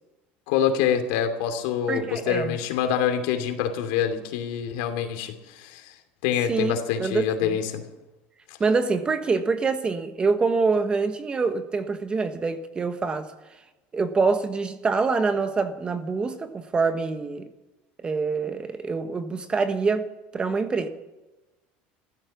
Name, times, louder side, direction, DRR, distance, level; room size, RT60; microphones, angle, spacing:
voice 1, 0.5-5.9 6.2-7.8 8.5-8.6, left 8 dB, 80° left, 6 dB, 2.8 m, -26 dB
voice 2, 1.9-2.6 6.5-7.6 8.6-13.3 13.9-17.5 18.0-20.1 20.3-20.9, right 4 dB, 20° right, 9 dB, 1.3 m, -25 dB
15.5 x 13.0 x 7.2 m, 1.0 s
cardioid pair, 135°, 5 cm